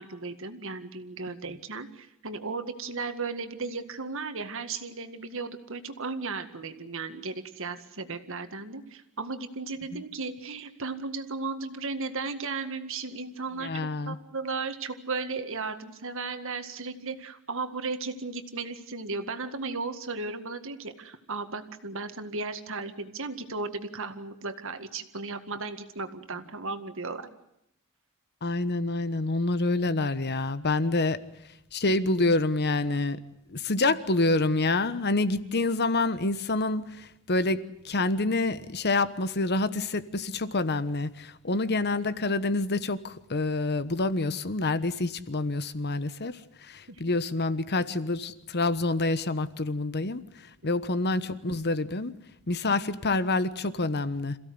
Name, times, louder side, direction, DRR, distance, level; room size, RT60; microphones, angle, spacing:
voice 1, 0.0-27.3 46.9-47.0 50.6-50.8, right 4 dB, 60° right, 9 dB, 2.0 m, -35 dB
voice 2, 13.6-14.2 28.4-31.2 31.7-33.2 33.5-52.2 52.5-54.4, left 2 dB, 50° left, 14 dB, 1.2 m, -27 dB
27.5 x 16.0 x 9.6 m, 0.80 s
head